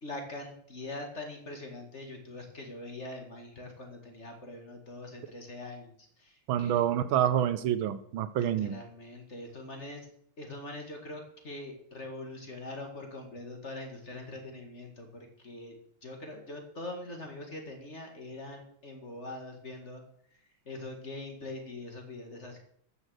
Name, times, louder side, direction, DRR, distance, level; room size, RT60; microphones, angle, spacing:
voice 1, 0.0-6.8 8.4-10.1 10.4-20.0 20.3-20.4 20.7-22.6, left 2 dB, 35° left, 3 dB, 2.0 m, -43 dB
voice 2, 6.5-8.7, right 10 dB, 75° right, 12 dB, 1.4 m, -27 dB
14.0 x 6.5 x 6.3 m, 0.65 s
omnidirectional pair, 2.3 m